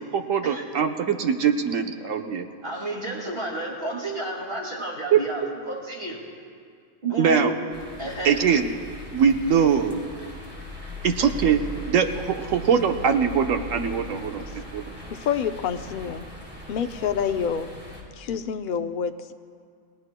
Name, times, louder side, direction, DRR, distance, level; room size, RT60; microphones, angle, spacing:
voice 1, 0.1-2.5 5.1-5.2 7.2-7.6 8.2-8.7 9.1-10.0 11.0-14.9, right 7 dB, 85° right, 5 dB, 1.3 m, -22 dB
voice 2, 2.6-6.2 7.0-7.5 8.0-8.5, right 2 dB, 50° right, -2 dB, 2.6 m, -31 dB
sound 1, 7.7-18.0, left 1 dB, 10° right, 3.2 m, -39 dB
voice 3, 15.1-16.2 16.7-17.7 18.2-19.1, left 7 dB, 50° left, 7 dB, 0.7 m, -27 dB
28.5 x 19.0 x 2.2 m, 2.2 s
omnidirectional pair, 1.3 m